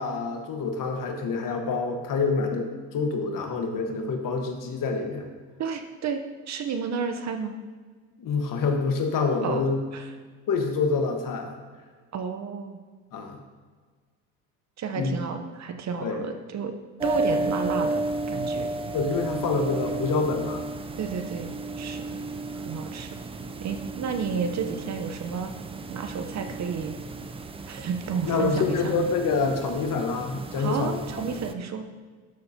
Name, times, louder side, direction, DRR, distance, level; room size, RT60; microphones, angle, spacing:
voice 1, 0.0-5.3 8.2-9.8 10.5-11.5 13.1-13.4 14.9-15.2 16.0-16.2 18.9-20.7 28.3-31.4, left 4 dB, 50° left, 4 dB, 1.5 m, -27 dB
voice 2, 5.6-7.5 9.4-9.6 9.9-10.1 12.1-12.8 14.8-16.7 17.0-18.0 18.3-18.7 21.0-21.5 21.8-22.2 22.5-23.2 23.6-25.5 25.9-27.0 27.7-29.1 30.6-31.8, right 6 dB, 40° right, 6 dB, 0.9 m, -31 dB
sound 1, 17.0-31.5, right 2 dB, 15° right, 0.4 m, -33 dB
12.5 x 6.5 x 2.8 m, 1.5 s
supercardioid pair, 80°, 42 cm